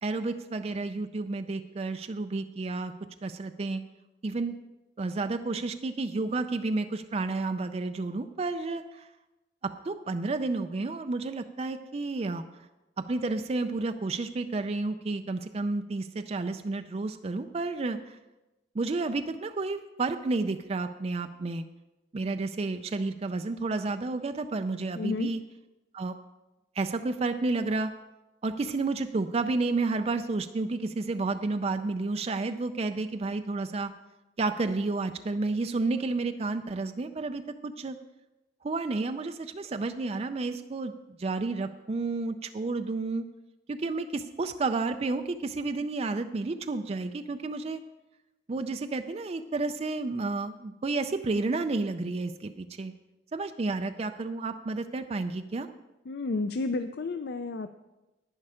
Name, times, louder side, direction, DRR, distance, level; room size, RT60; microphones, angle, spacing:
voice 1, 0.0-2.9 3.2-3.8 4.2-4.5 5.0-9.1 9.9-12.4 13.1-18.2 18.7-21.6 22.1-25.4 25.9-26.2 26.8-27.9 28.4-33.9 34.4-38.0 38.6-40.9 41.2-43.2 43.7-47.8 48.5-52.9 53.3-55.7, right 3 dB, 35° right, 8 dB, 0.4 m, -31 dB
voice 2, 24.9-25.3 56.1-57.7, left 3 dB, 60° left, 9 dB, 0.4 m, -31 dB
11.0 x 9.6 x 4.9 m, 1.0 s
head